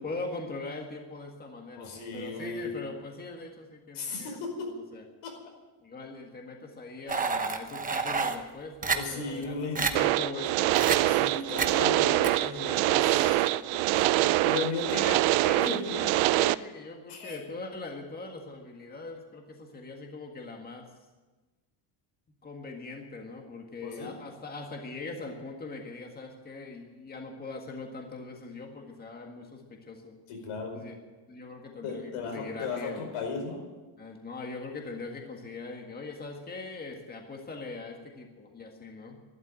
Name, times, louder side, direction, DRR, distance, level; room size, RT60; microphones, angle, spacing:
voice 1, 0.0-5.0 5.8-11.2 11.6-14.3 14.9-20.9 22.4-30.1 30.7-30.9 31.3-33.1 34.0-39.2, left 3 dB, 20° left, 2 dB, 1.8 m, -41 dB
voice 2, 1.8-2.7 3.9-4.7 5.2-5.3 8.9-9.8 11.0-12.3 13.0-13.4 13.9-15.0 15.6-15.9 17.1-17.4 23.8-24.1 30.3-30.8 31.8-33.6, left 4 dB, 85° left, 2 dB, 5.1 m, -36 dB
sound 1, 7.1-8.4 8.8-9.0 9.4-9.5 9.8-9.9 10.7-11.0 11.6-11.7 12.2-12.3, right 5 dB, 15° right, 0.9 m, -28 dB
sound 2, 10.0-16.5, right 17 dB, 70° right, 0.6 m, -25 dB
12.5 x 12.0 x 9.0 m, 1.2 s
cardioid pair, 150°, 50 cm